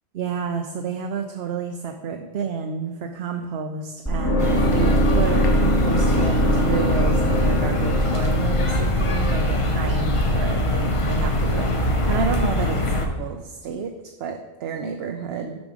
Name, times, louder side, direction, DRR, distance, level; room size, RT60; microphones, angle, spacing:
voice 1, 0.1-13.9 14.2-15.7, right 5 dB, 80° right, 5 dB, 0.8 m, -30 dB
sound 1, 4.1-10.1, equal, 15° left, 1.2 m, -23 dB
sound 2, 4.4-13.1, left 1 dB, 35° left, 0.7 m, -22 dB
7.2 x 5.2 x 4.9 m, 1.3 s
omnidirectional pair, 1.1 m